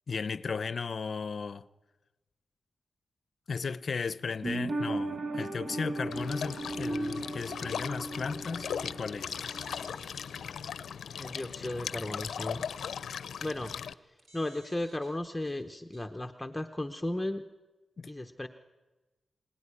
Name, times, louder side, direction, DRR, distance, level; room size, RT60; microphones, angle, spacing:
voice 1, 0.1-1.7 3.5-9.4 18.0-18.1, left 5 dB, 50° left, 0.7 m, -35 dB
sound 1, 4.4-9.9 10.2-10.3, right 2 dB, 40° right, 1.3 m, -36 dB
sound 2, 6.1-13.9, left 7 dB, 85° left, 0.7 m, -38 dB
sound 3, 9.3-10.3 10.7-10.8 12.0-12.1 14.2-15.6 15.9-16.1, right 2 dB, 65° right, 3.2 m, -59 dB
voice 2, 11.2-12.7 13.4-13.7 14.1-17.4 18.1-18.5, left 1 dB, 10° left, 0.9 m, -35 dB
25.5 x 18.5 x 9.9 m
wide cardioid pair, 135°, 0 cm